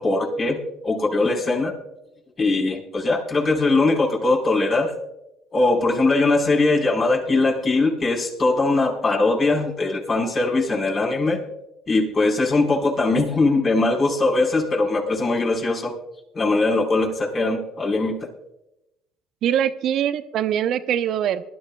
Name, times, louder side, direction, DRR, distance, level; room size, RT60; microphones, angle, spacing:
voice 1, 0.0-1.7 2.4-4.9 5.5-11.4 11.9-15.9 16.3-18.3, left 2 dB, 40° left, -2 dB, 4.6 m, -21 dB
voice 2, 19.4-21.4, right 10 dB, 60° right, 11 dB, 0.8 m, -23 dB
23.0 x 12.0 x 2.3 m, 0.86 s
hypercardioid pair, 75°, 0 cm